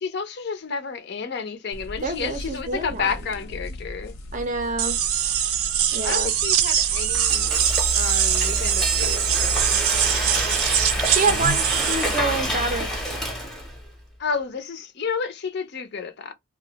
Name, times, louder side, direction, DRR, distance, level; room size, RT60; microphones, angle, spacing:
voice 1, 0.0-4.1 6.0-7.6 7.9-9.8 14.2-16.3, left 5 dB, 50° left, 0.4 m, -31 dB
sound 1, 1.7-7.5, left 1 dB, 80° left, 0.7 m, -38 dB
voice 2, 1.9-3.1 4.3-5.0 5.9-6.3 11.1-12.9, right 3 dB, 35° right, 0.5 m, -27 dB
sound 2, 4.8-12.2, right 10 dB, 85° right, 0.5 m, -23 dB
Frying (food), 6.8-13.9, equal, ahead, 0.7 m, -27 dB
2.4 x 2.1 x 3.8 m
head